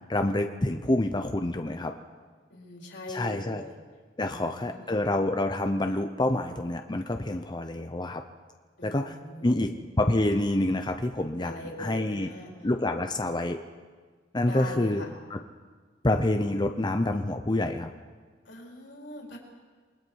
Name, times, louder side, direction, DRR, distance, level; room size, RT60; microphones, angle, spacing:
voice 1, 0.1-1.9 3.1-3.6 4.2-8.2 8.8-9.1 9.4-9.7 10.0-11.5 11.8-12.3 12.6-13.6 14.3-15.0 15.3-15.4 16.0-17.9, left 1 dB, 25° left, 5 dB, 0.8 m, -27 dB
voice 2, 2.5-3.8 4.2-5.1 8.8-9.7 11.4-12.5 14.4-15.1 18.4-19.4, left 1 dB, 70° left, -1 dB, 4.4 m, -41 dB
28.5 x 21.0 x 4.7 m, 1.5 s
head